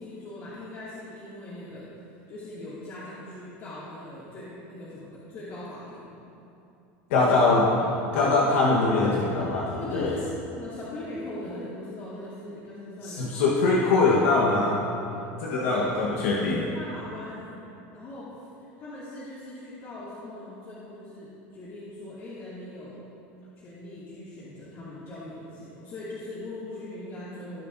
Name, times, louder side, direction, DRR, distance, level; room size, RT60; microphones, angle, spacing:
voice 1, 0.0-1.9 2.3-6.1 7.2-7.3 7.7-7.9 9.0-9.2 9.8-13.5 15.1-15.3 15.6-15.9 16.7-17.5 17.9-23.0 23.6-27.7, left 1 dB, 45° left, -10 dB, 2.4 m, -40 dB
voice 2, 7.1-7.7 8.1-10.2 13.0-14.8 15.4-16.7, left 3 dB, 80° left, -5 dB, 1.3 m, -22 dB
18.5 x 6.8 x 2.7 m, 2.9 s
supercardioid pair, 120°, 7 cm